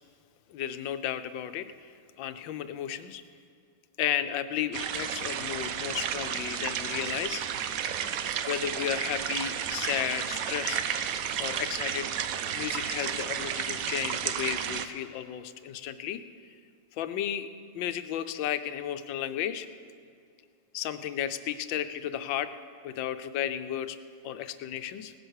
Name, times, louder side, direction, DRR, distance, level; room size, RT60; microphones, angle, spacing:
voice 1, 0.5-1.7 2.2-3.2 4.0-7.4 8.5-10.8 11.4-12.1 12.5-16.2 17.0-17.5 17.7-19.7 20.7-22.5 22.8-24.0 24.2-25.1, left 10 dB, 90° left, 10 dB, 1.4 m, -33 dB
sound 1, 4.7-14.9, right 8 dB, 65° right, 0.9 m, -32 dB
17.5 x 10.0 x 6.4 m, 2.4 s
omnidirectional pair, 2.0 m